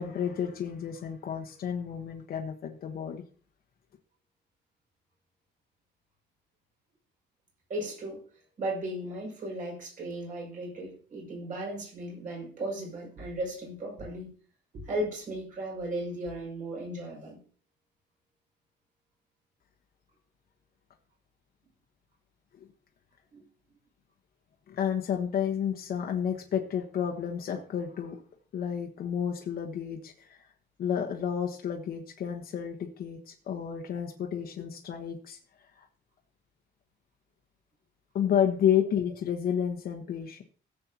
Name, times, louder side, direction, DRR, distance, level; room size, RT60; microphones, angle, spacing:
voice 1, 0.0-3.2 22.6-22.7 24.7-28.2 28.5-30.4 30.8-35.4 35.8-35.9 38.1-40.4, left 8 dB, 55° left, 2 dB, 1.2 m, -31 dB
voice 2, 7.7-8.2 8.6-14.3 14.7-17.4 23.3-23.4, right 1 dB, 45° right, -1 dB, 6.1 m, -36 dB
17.0 x 7.7 x 2.9 m, 0.42 s
cardioid pair, 180°, 19 cm